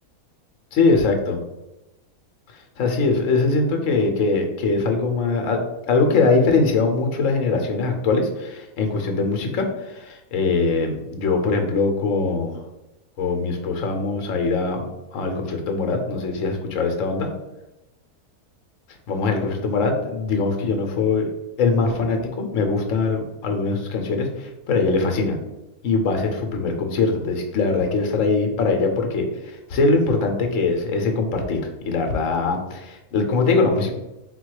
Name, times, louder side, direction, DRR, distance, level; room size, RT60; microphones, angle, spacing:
voice 1, 0.7-1.4 2.8-5.6 5.9-12.5 13.2-14.8 15.1-17.3 19.1-21.3 21.6-25.4 25.8-31.6 31.9-33.9, left 3 dB, 65° left, 4 dB, 1.1 m, -22 dB
4.0 x 2.3 x 4.6 m, 0.97 s
omnidirectional pair, 1.5 m